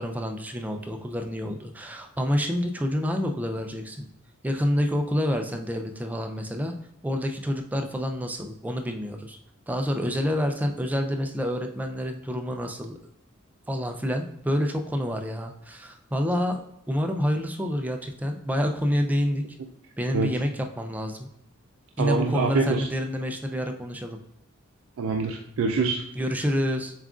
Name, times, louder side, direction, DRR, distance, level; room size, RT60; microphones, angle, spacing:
voice 1, 0.0-4.1 4.4-6.7 7.0-9.4 9.7-12.9 13.7-16.6 16.9-19.4 20.0-21.3 22.0-24.2 26.1-26.9, equal, 10° right, 3 dB, 0.3 m, -28 dB
voice 2, 22.0-22.9 25.0-26.0, right 4 dB, 80° right, 3 dB, 0.4 m, -25 dB
7.2 x 2.4 x 2.3 m, 0.77 s
head